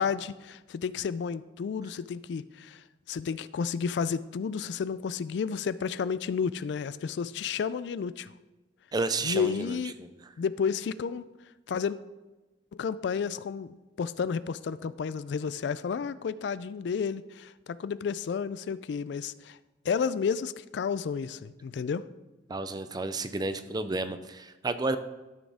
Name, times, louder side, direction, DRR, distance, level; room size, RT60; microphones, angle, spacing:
voice 1, 0.0-8.3 9.2-9.9 10.4-11.3 11.7-12.0 12.7-19.6 19.8-22.0, left 6 dB, 65° left, 16 dB, 0.3 m, -31 dB
voice 2, 8.9-10.1 22.5-25.0, right 3 dB, 20° right, 11 dB, 0.5 m, -31 dB
13.0 x 6.3 x 3.5 m, 1.1 s
head